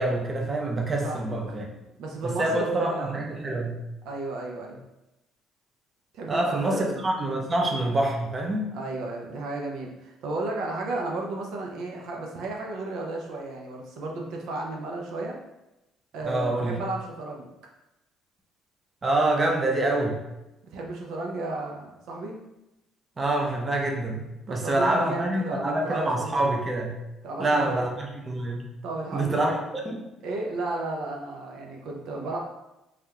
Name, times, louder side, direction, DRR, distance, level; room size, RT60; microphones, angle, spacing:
voice 1, 0.0-1.7 2.2-3.8 6.3-8.7 16.2-16.8 19.0-20.2 23.2-27.0 27.4-28.7 29.1-29.5 29.8-30.0, right 2 dB, 30° right, 1 dB, 0.5 m, -26 dB
voice 2, 1.0-1.3 2.0-3.2 4.0-4.8 6.1-7.0 8.7-15.4 16.1-17.5 20.7-22.4 24.5-26.5 27.2-27.9 28.8-29.6 30.2-32.4, right 2 dB, 80° right, 0 dB, 0.5 m, -33 dB
3.3 x 2.4 x 2.8 m, 0.93 s
cardioid pair, 115°, 0 cm